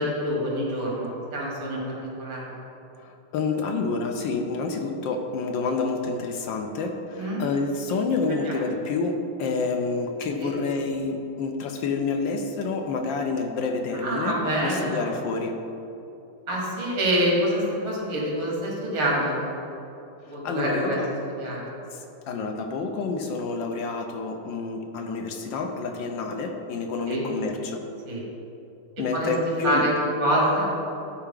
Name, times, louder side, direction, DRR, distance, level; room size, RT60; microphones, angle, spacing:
voice 1, 0.0-2.5 7.1-7.4 8.4-8.5 10.4-10.5 13.9-15.1 16.5-19.5 20.2-21.0 21.4-21.7 27.1-27.2 28.1-28.2 29.1-29.3 29.6-29.9 30.2-30.7, equal, 85° right, -4 dB, 2.8 m, -26 dB
voice 2, 3.0-15.6 20.4-21.1 21.5-21.6 21.9-27.8 29.0-29.9, left 4 dB, 75° left, 4 dB, 1.2 m, -28 dB
11.0 x 4.5 x 3.7 m, 2.9 s
omnidirectional pair, 2.3 m